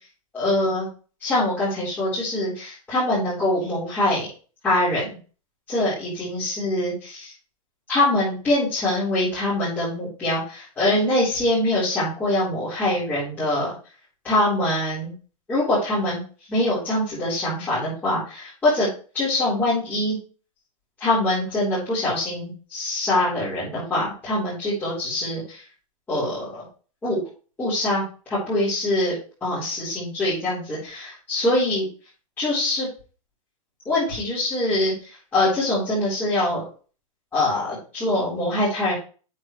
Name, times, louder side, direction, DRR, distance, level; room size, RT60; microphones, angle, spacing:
voice 1, 0.3-0.9 1.2-4.3 4.6-5.1 5.7-7.3 7.9-13.7 14.2-15.1 15.5-16.2 16.5-18.9 19.1-20.2 21.0-25.6 26.1-26.6 27.0-27.2 27.6-28.0 28.3-29.1 29.4-31.8 32.4-32.9 33.9-34.9 35.3-36.6 37.3-38.9, left 1 dB, 10° left, -11 dB, 4.3 m, -23 dB
8.1 x 8.0 x 3.2 m, 0.37 s
supercardioid pair, 170°, 18 cm